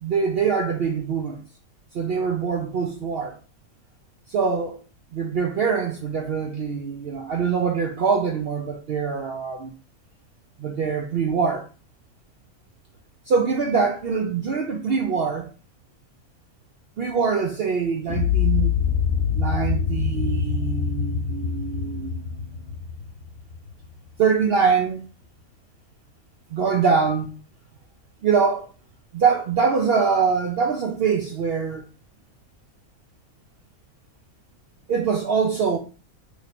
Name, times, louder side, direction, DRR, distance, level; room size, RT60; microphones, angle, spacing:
voice 1, 0.0-1.4 1.9-3.4 4.3-4.8 5.1-9.7 10.6-11.7 13.3-15.5 17.0-18.7 19.3-22.4 24.2-25.0 26.5-27.3 28.2-28.7 29.1-31.8 34.9-35.8, right 5 dB, 70° right, 0.6 m, -23 dB
sound 1, 18.1-24.1, left 7 dB, 90° left, 1.1 m, -25 dB
3.2 x 2.7 x 4.1 m
omnidirectional pair, 1.5 m